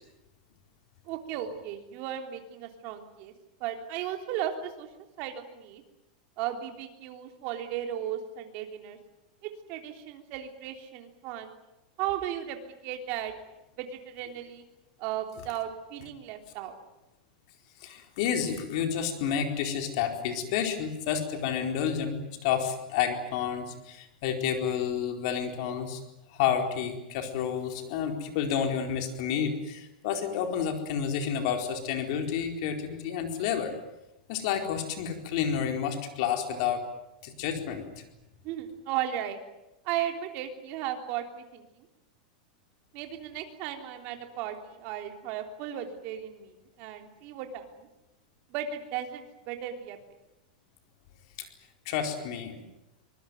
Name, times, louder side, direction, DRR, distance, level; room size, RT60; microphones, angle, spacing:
voice 1, 1.0-3.3 3.6-4.9 5.2-5.8 6.4-9.0 9.4-11.5 12.0-12.6 12.8-13.3 13.8-14.6 15.0-16.8 38.4-39.4 39.8-41.8 42.9-47.9 48.5-50.0, right 10 dB, 40° right, 5 dB, 3.5 m, -35 dB
voice 2, 17.8-26.0 26.3-33.7 34.3-36.9 37.2-38.0 51.4-51.5 51.8-52.7, left 8 dB, 50° left, 5 dB, 4.4 m, -30 dB
25.0 x 20.5 x 9.4 m, 0.94 s
supercardioid pair, 165°, 4 cm